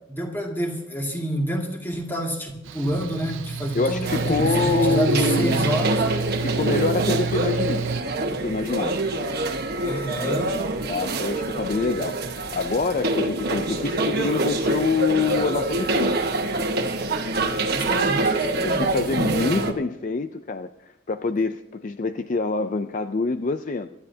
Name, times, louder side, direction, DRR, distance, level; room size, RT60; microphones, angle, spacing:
voice 1, 0.1-6.0 9.8-10.5 17.7-19.0, equal, 10° left, 1 dB, 2.0 m, -28 dB
Mechanical fan, 2.6-8.0, right 5 dB, 70° right, 0.4 m, -29 dB
voice 2, 3.7-5.6 6.4-7.9 8.3-9.0 10.9-16.2 18.0-18.1 18.6-23.9, left 4 dB, 40° left, 10 dB, 0.4 m, -26 dB
sound 1, 4.0-19.7, right 2 dB, 50° right, 1.3 m, -25 dB
24.5 x 12.0 x 2.8 m, 0.92 s
head